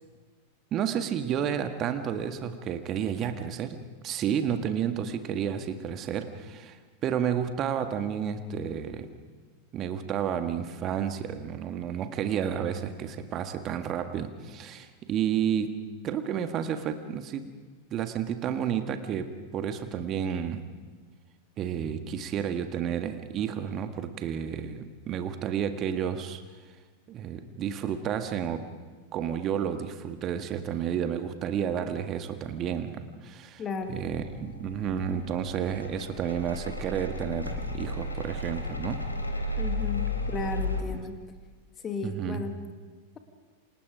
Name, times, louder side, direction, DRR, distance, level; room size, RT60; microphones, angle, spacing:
voice 1, 0.7-3.8 4.0-6.8 7.0-9.1 9.7-15.7 16.0-17.4 17.9-20.6 21.6-26.4 27.1-28.6 29.1-33.6 33.9-39.0 42.0-42.4, right 8 dB, 30° right, 8 dB, 1.8 m, -31 dB
voice 2, 33.6-34.0 39.6-41.2 41.8-42.6, left 4 dB, 25° left, 7 dB, 2.0 m, -34 dB
sound 1, 33.8-40.8, left 2 dB, 80° left, 3.1 m, -34 dB
28.5 x 26.0 x 5.1 m, 1.4 s
figure-of-eight pair, 90°, 0 cm